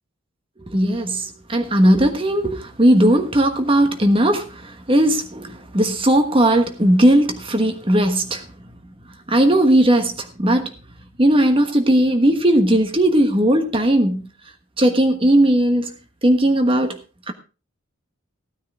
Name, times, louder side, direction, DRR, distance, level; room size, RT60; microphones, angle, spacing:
voice 1, 0.7-8.5 9.3-10.7 11.2-14.2 14.8-15.9 16.2-17.0 17.3-17.4, right 1 dB, 25° right, 1.3 m, -17 dB
15.5 x 9.5 x 3.7 m
head